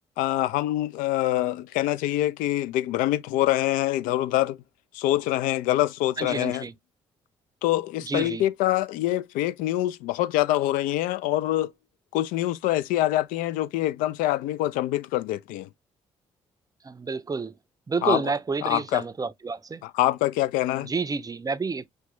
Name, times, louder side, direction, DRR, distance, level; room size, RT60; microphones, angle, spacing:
voice 1, 0.2-4.6 4.9-6.7 7.6-11.7 12.1-15.7 18.0-18.2 18.6-19.0 19.8-20.9, left 15 dB, 75° left, 0.4 m, -25 dB
voice 2, 6.2-6.7 8.1-8.4 16.8-17.5 17.9-19.8 20.8-21.8, right 4 dB, 25° right, 0.5 m, -29 dB
5.8 x 2.2 x 2.9 m
hypercardioid pair, 45°, 14 cm